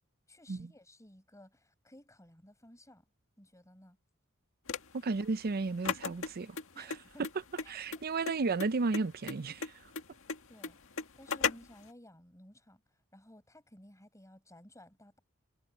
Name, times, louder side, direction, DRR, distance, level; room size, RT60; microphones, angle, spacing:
voice 1, 0.3-3.1 3.4-4.0 6.7-7.3 7.6-8.2 10.5-15.2, left 1 dB, 15° left, 7.9 m, -57 dB
sound 1, 4.7-11.9, left 6 dB, 65° left, 1.9 m, -37 dB
voice 2, 5.0-6.9 7.7-9.8, right 3 dB, 45° right, 0.5 m, -33 dB
head